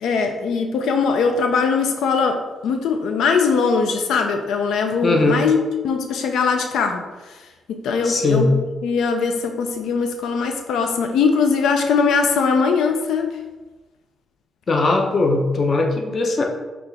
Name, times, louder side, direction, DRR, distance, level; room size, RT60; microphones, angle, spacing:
voice 1, 0.0-5.6 5.8-7.1 7.7-8.5 8.8-13.4, left 5 dB, 85° left, 5 dB, 0.3 m, -20 dB
voice 2, 5.0-5.4 8.0-8.5 14.7-16.4, left 3 dB, 35° left, 2 dB, 0.6 m, -19 dB
5.8 x 2.4 x 3.4 m, 1.2 s
cardioid pair, 150°, 0 cm